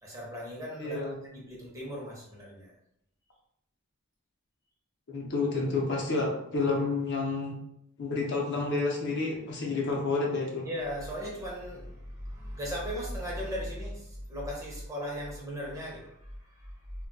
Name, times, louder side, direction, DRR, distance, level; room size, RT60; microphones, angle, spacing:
voice 1, 0.0-2.7 10.6-16.7, equal, 15° right, -4 dB, 0.7 m, -37 dB
voice 2, 0.8-1.2 5.1-7.6 8.0-10.7, left 3 dB, 55° left, -1 dB, 0.6 m, -30 dB
2.2 x 2.2 x 3.8 m, 0.76 s
head